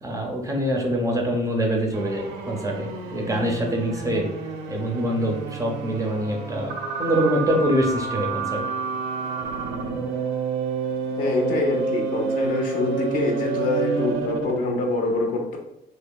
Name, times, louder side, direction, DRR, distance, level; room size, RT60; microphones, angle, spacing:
voice 1, 0.0-4.3 4.7-6.7 7.0-8.6, equal, 20° right, 1 dB, 0.4 m, -24 dB
sound 1, 1.9-14.6, right 4 dB, 85° right, 0.4 m, -29 dB
voice 2, 11.2-15.6, left 2 dB, 50° left, 1 dB, 0.5 m, -25 dB
2.7 x 2.0 x 2.2 m, 0.84 s
cardioid pair, 110°, 17 cm